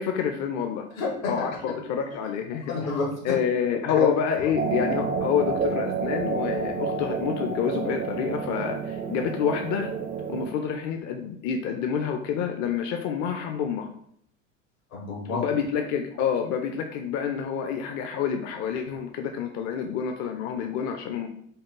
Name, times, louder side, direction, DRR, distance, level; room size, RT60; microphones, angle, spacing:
voice 1, 0.0-0.8 1.3-2.9 3.2-9.9 10.3-13.9 15.3-21.3, left 7 dB, 45° left, 5 dB, 0.6 m, -28 dB
voice 2, 1.0-1.7 2.7-3.4 3.9-4.1 4.4-4.5 14.9-15.5, left 3 dB, 80° left, -1 dB, 1.8 m, -29 dB
sound 1, 4.6-10.5, right 5 dB, 20° right, 0.4 m, -29 dB
5.2 x 2.2 x 3.8 m, 0.68 s
hypercardioid pair, 75°, 40 cm